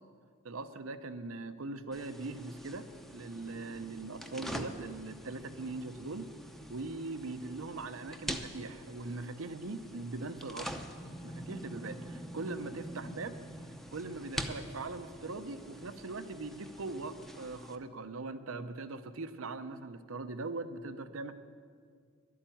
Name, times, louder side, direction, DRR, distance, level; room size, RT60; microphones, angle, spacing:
voice 1, 0.4-6.3 6.7-10.8 11.2-13.4 13.9-21.3, right 3 dB, 75° right, 10 dB, 0.7 m, -41 dB
sound 1, 1.9-17.7, equal, ahead, 0.7 m, -45 dB
11.0 x 8.7 x 9.2 m, 2.1 s
head